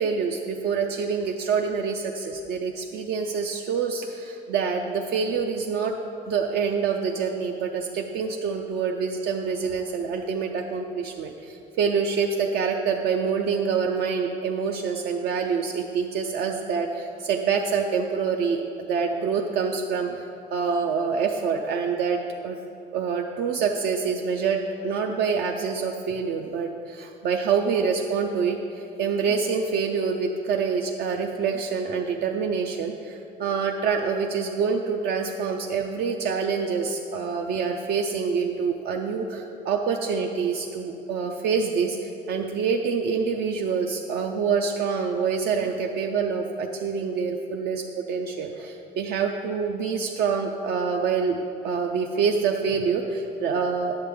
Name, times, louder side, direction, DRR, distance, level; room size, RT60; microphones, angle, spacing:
voice 1, 0.0-5.9 6.3-22.2 22.4-22.6 22.9-51.4 51.6-54.0, right 5 dB, 70° right, 2 dB, 0.5 m, -26 dB
8.8 x 6.6 x 3.6 m, 2.6 s
cardioid pair, 110°, 17 cm